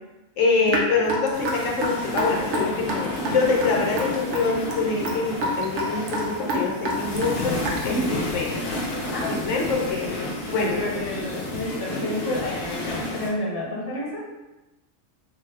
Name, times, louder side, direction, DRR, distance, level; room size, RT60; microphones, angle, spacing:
voice 1, 0.4-7.6 7.8-8.5 9.3-10.1 10.5-10.8, left 4 dB, 85° left, -1 dB, 1.0 m, -25 dB
Raindrop / Drip, 0.7-8.0, equal, 75° right, 0.9 m, -28 dB
sound 1, 1.3-13.3, left 1 dB, 60° left, 0.8 m, -31 dB
voice 2, 6.9-7.3 7.9-8.3 9.1-9.6 10.1-14.3, left 1 dB, 25° left, -5 dB, 0.6 m, -30 dB
3.0 x 2.0 x 3.3 m, 1.0 s
omnidirectional pair, 1.3 m